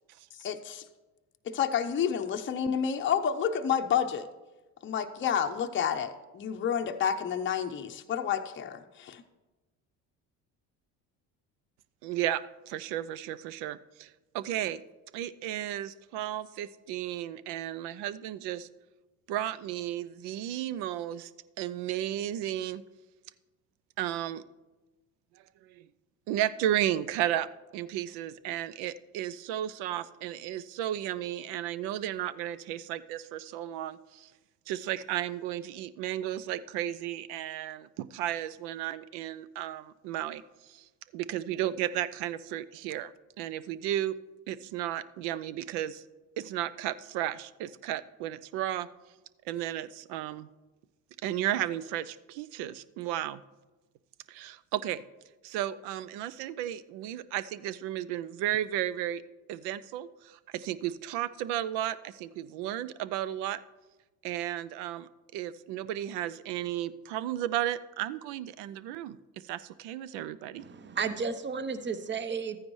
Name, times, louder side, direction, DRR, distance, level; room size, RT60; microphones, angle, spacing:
voice 1, 0.4-0.8 1.4-4.3 4.8-9.2, left 8 dB, 30° left, 6 dB, 0.6 m, -29 dB
voice 2, 12.0-14.1 14.3-14.8 15.1-18.7 19.3-21.3 21.6-22.8 24.0-24.4 25.6-25.9 26.3-27.5 27.7-34.3 34.7-40.9 41.1-43.1 43.4-44.1 44.5-46.0 46.4-48.9 49.5-50.5 51.2-53.4 54.3-55.0 55.4-59.2 59.5-63.6 64.2-70.7, right 12 dB, 75° right, 17 dB, 0.5 m, -34 dB
voice 3, 70.5-72.6, right 5 dB, 25° right, 12 dB, 0.7 m, -33 dB
13.5 x 9.5 x 3.1 m, 1.2 s
supercardioid pair, 70°, 42 cm